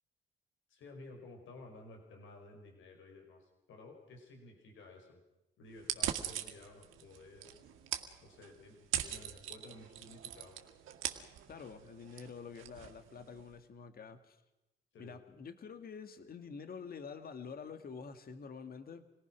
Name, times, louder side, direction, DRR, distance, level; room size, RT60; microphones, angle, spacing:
voice 1, 0.7-5.2 5.6-7.7 8.2-10.6 14.9-15.2, left 2 dB, 80° left, 3 dB, 5.2 m, -54 dB
sound 1, 5.8-13.5, right 11 dB, 90° right, 2.0 m, -42 dB
voice 2, 11.5-14.4 15.0-19.0, left 6 dB, 50° left, 9 dB, 2.0 m, -47 dB
27.5 x 19.0 x 6.2 m, 0.95 s
cardioid pair, 90°, 20 cm